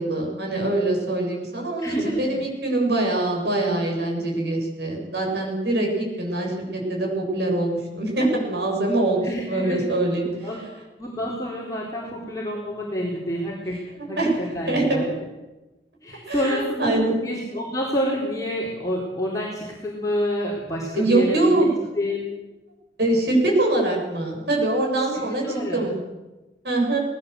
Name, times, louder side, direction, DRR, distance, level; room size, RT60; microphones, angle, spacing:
voice 1, 0.0-10.3 14.0-14.4 14.7-15.1 16.3-17.1 20.9-21.7 23.0-25.4 25.7-26.0 26.6-27.0, right 2 dB, 70° right, -1 dB, 7.6 m, -23 dB
voice 2, 1.8-2.2 9.2-9.8 10.4-10.6 11.0-13.8 14.1-15.2 16.0-21.7 21.9-22.2 25.1-25.9, equal, 20° left, -4 dB, 3.9 m, -28 dB
20.0 x 17.5 x 8.2 m, 1.1 s
head